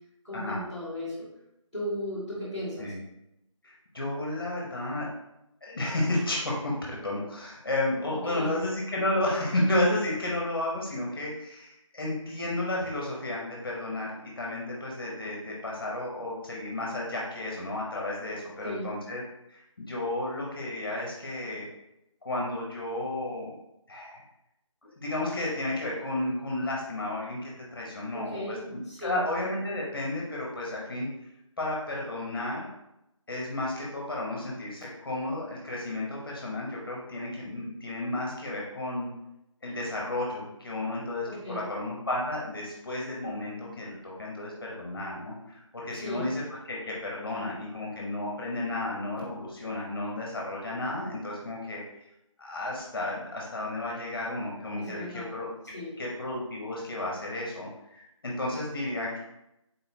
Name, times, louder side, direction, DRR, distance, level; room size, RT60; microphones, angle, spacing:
voice 1, 0.2-1.3 1.7-2.9 8.1-8.6 18.6-18.9 28.1-28.6 28.9-29.2 41.3-41.6 45.9-46.3 54.8-55.3 55.7-55.9, left 1 dB, ahead, -19 dB, 1.2 m, -36 dB
voice 2, 3.6-5.1 5.6-19.2 19.5-21.7 22.2-23.5 23.9-24.2 24.8-31.1 31.6-32.7 33.3-39.1 39.6-51.8 52.4-55.5 56.0-59.2, left 1 dB, 45° left, -3 dB, 0.9 m, -32 dB
3.8 x 3.8 x 2.8 m, 0.85 s
figure-of-eight pair, 165°, 17 cm